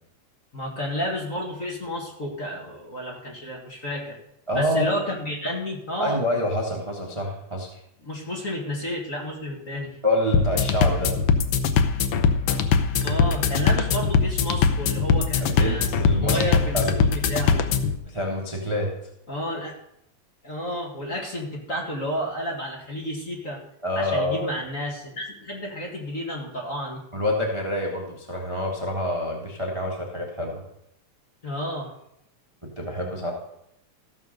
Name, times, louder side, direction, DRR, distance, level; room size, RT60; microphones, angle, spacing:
voice 1, 0.5-4.2 4.5-6.2 8.0-10.0 13.0-15.9 16.2-17.7 19.3-19.8 20.4-23.6 24.0-27.0 31.4-31.9, equal, 30° left, -1 dB, 1.9 m, -31 dB
voice 2, 4.5-5.0 6.0-7.7 10.0-11.1 15.4-17.0 18.1-18.9 23.8-24.5 27.1-30.6 32.8-33.3, left 1 dB, 15° right, -1 dB, 1.1 m, -27 dB
sound 1, 10.3-18.0, left 5 dB, 70° left, 1.5 m, -22 dB
14.5 x 6.2 x 6.6 m, 0.77 s
omnidirectional pair, 3.4 m